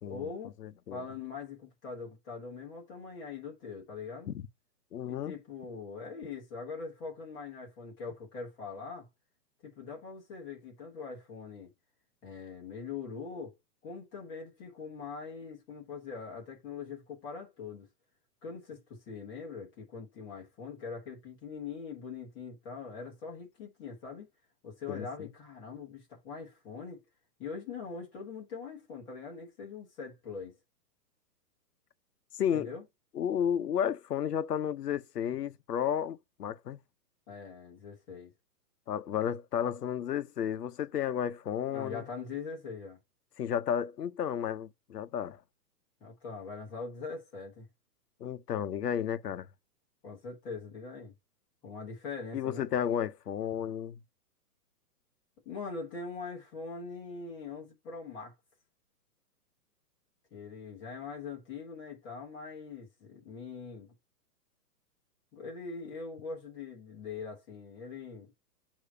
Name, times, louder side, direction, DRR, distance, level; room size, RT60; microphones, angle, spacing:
voice 1, 0.1-0.5 0.9-4.3 5.0-9.1 9.6-11.7 12.2-13.5 13.8-17.9 18.4-24.3 24.6-27.0 27.4-30.6 32.5-32.8 37.3-38.3 41.7-43.0 46.0-47.7 50.0-51.1 51.6-52.7 55.4-58.3 60.3-63.9 65.3-68.3, left 5 dB, 10° left, 1.3 m, -42 dB
voice 2, 0.6-1.0 4.3-4.4 4.9-5.3 24.9-25.3 32.4-32.7 33.1-36.8 38.9-42.0 43.4-45.4 48.2-49.5 52.3-54.0, left 9 dB, 80° left, 1.0 m, -32 dB
6.8 x 3.0 x 5.5 m
hypercardioid pair, 180°, 47 cm